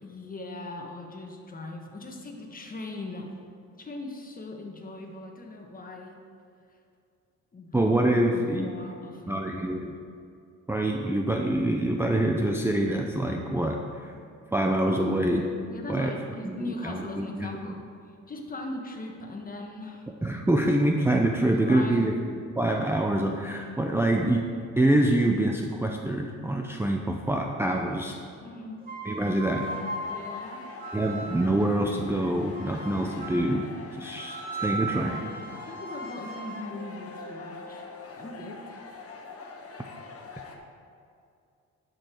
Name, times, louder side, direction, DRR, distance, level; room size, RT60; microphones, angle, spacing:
voice 1, 0.0-3.3 3.8-6.2 7.5-7.9 8.1-9.4 15.7-17.9 18.3-20.1 21.4-22.2 28.4-28.9 30.0-30.7 35.6-37.9 38.2-38.8, left 2 dB, 30° left, 1 dB, 1.4 m, -39 dB
voice 2, 7.7-8.7 9.3-9.9 10.7-14.1 14.5-15.5 15.9-16.1 16.5-16.6 16.8-17.1 17.3-17.5 20.2-22.1 22.6-24.5 24.8-28.2 29.0-29.7 30.9-33.7 34.0-35.2, right 1 dB, 10° right, 1 dB, 0.6 m, -25 dB
sound 1, 28.8-31.7 32.5-33.6 34.2-38.1, right 2 dB, 30° right, 1.5 m, -38 dB
sound 2, 29.6-40.6, left 4 dB, 50° left, 1.2 m, -44 dB
11.0 x 5.4 x 4.6 m, 2.5 s
cardioid pair, 90°, 30 cm